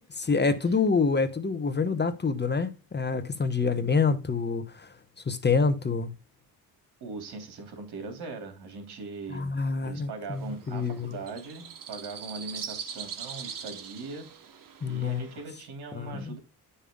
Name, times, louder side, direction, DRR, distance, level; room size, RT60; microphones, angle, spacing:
voice 1, 0.2-4.9 5.3-6.1 9.3-11.2 14.8-15.2 15.9-16.3, left 4 dB, 25° left, 1.1 m, -27 dB
voice 2, 7.0-9.5 9.8-14.3 14.8-16.4, right 3 dB, 75° right, 3.0 m, -40 dB
sound 1, 10.3-15.5, right 7 dB, 55° right, 1.4 m, -42 dB
9.9 x 5.6 x 3.7 m
cardioid pair, 80°, 39 cm